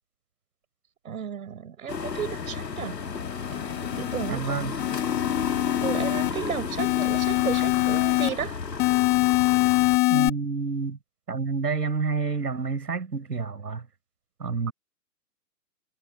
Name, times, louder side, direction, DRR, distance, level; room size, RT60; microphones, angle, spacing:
voice 1, 1.0-3.0 4.0-4.6 5.8-8.6, right 8 dB, 55° right, 5.5 m, -33 dB
sound 1, 1.9-10.0, left 5 dB, 80° left, 2.0 m, -33 dB
sound 2, 3.2-4.3 4.8-6.3 6.8-8.3 8.8-10.3, left 25 dB, 20° left, 1.4 m, -24 dB
voice 2, 4.3-4.8 10.1-11.0 11.3-13.9 14.4-14.7, right 4 dB, 75° right, 5.9 m, -29 dB
figure-of-eight pair, 135°, 48 cm